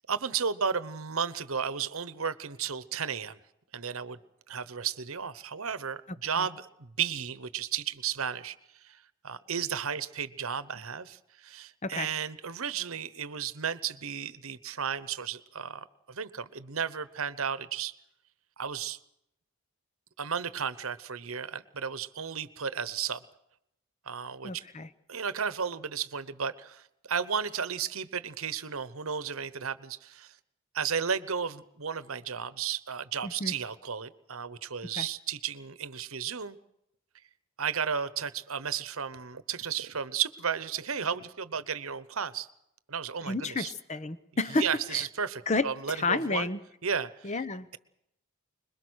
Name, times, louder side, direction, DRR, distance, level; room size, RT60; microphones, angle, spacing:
voice 1, 0.1-3.4 3.7-4.2 4.5-8.6 8.8-18.0 18.6-19.0 20.2-23.2 24.0-24.6 25.1-30.4 30.7-36.6 37.6-42.5 42.9-43.7 44.5-46.5 46.8-47.3, right 7 dB, 70° right, 15 dB, 1.0 m, -33 dB
voice 2, 24.4-24.9 33.2-33.5 35.0-35.1 43.3-45.0 45.5-46.6 47.2-47.7, left 3 dB, 30° left, 14 dB, 0.9 m, -31 dB
26.0 x 21.5 x 6.4 m, 0.78 s
head